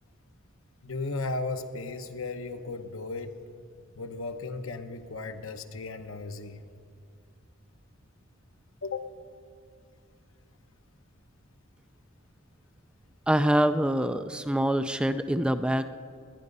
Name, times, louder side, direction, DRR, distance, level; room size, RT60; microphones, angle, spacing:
voice 1, 0.8-3.4 3.9-6.6 8.8-9.1, left 3 dB, 70° left, 7 dB, 0.9 m, -35 dB
voice 2, 13.3-15.9, right 1 dB, 5° right, 10 dB, 0.3 m, -25 dB
19.5 x 11.0 x 5.4 m, 2.4 s
head